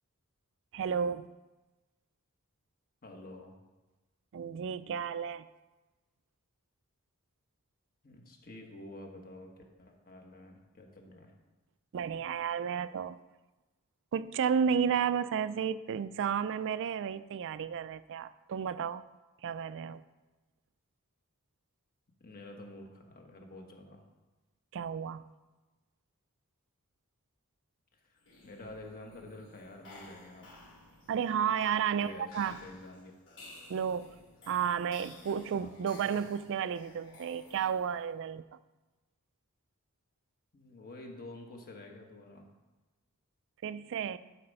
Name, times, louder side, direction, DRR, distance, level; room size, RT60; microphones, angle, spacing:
voice 1, 0.7-1.3 4.3-5.5 11.9-13.2 14.1-19.0 19.4-20.0 24.7-25.3 31.1-32.6 33.7-34.1 34.5-38.4 43.6-44.2, right 7 dB, 60° right, 15 dB, 0.3 m, -32 dB
voice 2, 3.0-3.5 8.0-11.3 22.2-24.0 28.1-30.5 31.9-32.3 32.6-33.1 35.5-36.2 40.5-42.5, left 2 dB, 40° left, 2 dB, 1.5 m, -49 dB
sound 1, 28.2-38.1, left 2 dB, 60° left, 3.4 m, -55 dB
12.0 x 4.9 x 5.4 m, 1.1 s
head